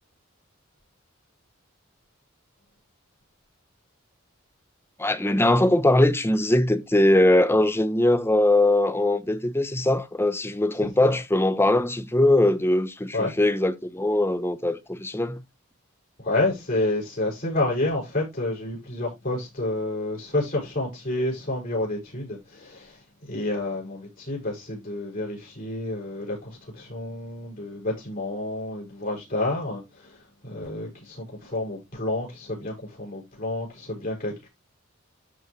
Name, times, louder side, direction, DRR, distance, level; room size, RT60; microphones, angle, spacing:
voice 1, 5.0-15.4, left 1 dB, 10° left, 0.8 m, -21 dB
voice 2, 16.2-23.0 23.3-30.2 30.4-34.5, left 2 dB, 45° left, 6.5 m, -29 dB
13.5 x 5.4 x 3.3 m
head